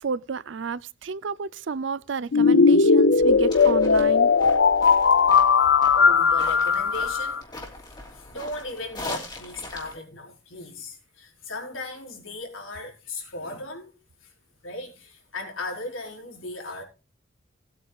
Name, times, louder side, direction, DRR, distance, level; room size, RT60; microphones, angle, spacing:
voice 1, 0.0-4.3, right 5 dB, 65° right, 0.5 m, -31 dB
sound 1, 2.3-7.4, left 5 dB, 60° left, 0.5 m, -18 dB
sound 2, 3.2-10.0, left 2 dB, 20° left, 2.8 m, -40 dB
voice 2, 5.9-7.4 7.8-13.9 14.2-14.3 14.6-16.8, left 2 dB, 85° left, 4.5 m, -37 dB
19.0 x 9.0 x 2.4 m
head